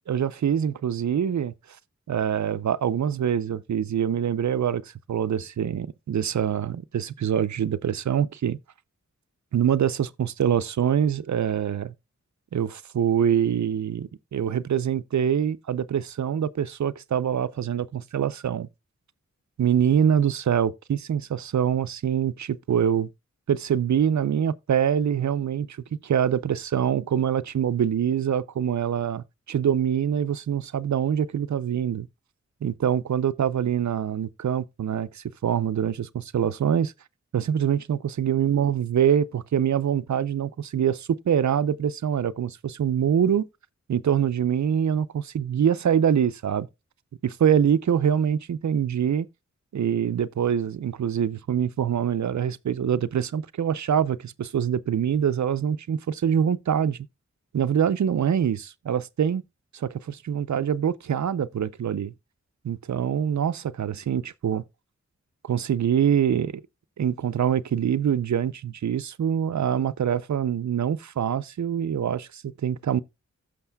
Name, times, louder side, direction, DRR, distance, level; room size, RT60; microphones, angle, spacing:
voice 1, 0.1-1.5 2.1-8.6 9.5-11.9 12.5-18.7 19.6-23.1 23.5-32.1 32.6-36.9 37.3-43.4 43.9-46.7 47.2-49.3 49.7-57.0 57.5-59.4 59.7-62.1 62.6-64.6 65.4-66.6 67.0-73.0, right 8 dB, 70° right, 0.5 m, -24 dB
15.5 x 6.5 x 2.2 m
wide cardioid pair, 65°, 29 cm